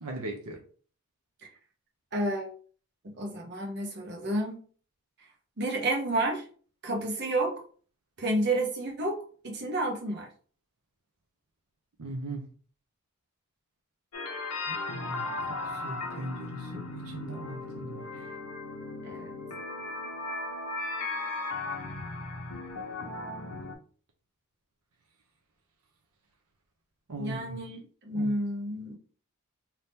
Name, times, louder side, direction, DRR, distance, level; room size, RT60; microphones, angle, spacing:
voice 1, 0.0-0.6 12.0-12.4 14.7-15.3 15.6-18.3 27.1-27.6 28.1-28.3, right 2 dB, 80° right, 0.7 m, -39 dB
voice 2, 2.1-2.5 3.2-4.6 5.6-6.4 6.8-7.5 8.2-9.2 9.4-10.3 19.0-19.3 27.2-29.0, right 1 dB, 50° right, 0.9 m, -30 dB
sound 1, 14.1-23.7, left 2 dB, 80° left, 0.7 m, -36 dB
3.5 x 2.8 x 2.7 m
head